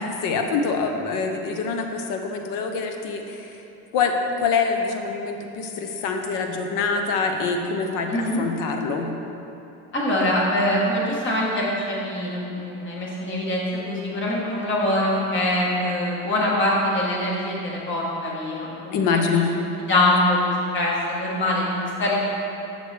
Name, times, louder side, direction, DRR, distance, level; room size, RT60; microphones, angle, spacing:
voice 1, 0.0-3.5 3.9-9.1 18.9-19.5, left 5 dB, 55° left, 4 dB, 0.7 m, -25 dB
voice 2, 8.1-8.4 9.9-19.4 19.8-22.1, left 1 dB, 30° left, -4 dB, 1.3 m, -24 dB
6.6 x 6.4 x 3.3 m, 2.9 s
cardioid pair, 150°, 39 cm